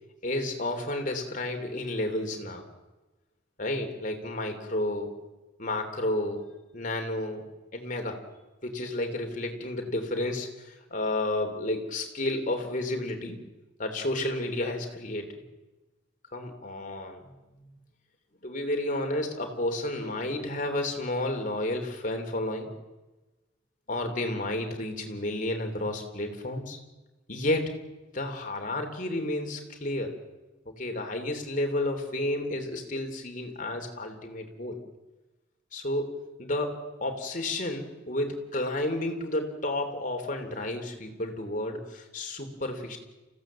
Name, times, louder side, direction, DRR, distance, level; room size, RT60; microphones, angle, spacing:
voice 1, 0.2-2.6 3.6-5.1 5.6-6.4 6.7-7.4 7.7-8.2 8.6-13.4 13.8-15.3 16.3-17.7 18.4-22.7 23.9-26.8 27.3-27.7 28.1-30.2 30.6-34.8 35.7-43.0, left 1 dB, 40° left, 5 dB, 3.2 m, -31 dB
28.5 x 16.0 x 7.5 m, 1.1 s
head